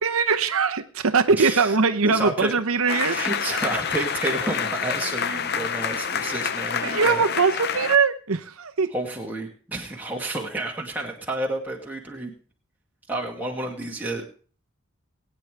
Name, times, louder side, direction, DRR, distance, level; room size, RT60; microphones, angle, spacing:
voice 1, 0.0-3.2 6.8-8.9, right 5 dB, 80° right, 8 dB, 0.8 m, -21 dB
voice 2, 1.4-1.8 2.0-2.5 2.9-7.2 8.9-12.3 13.1-14.2, right 2 dB, 10° right, -2 dB, 2.3 m, -30 dB
sound 1, 2.9-8.0, left 7 dB, 45° left, 0.6 m, -28 dB
21.0 x 9.5 x 3.4 m, 0.42 s
head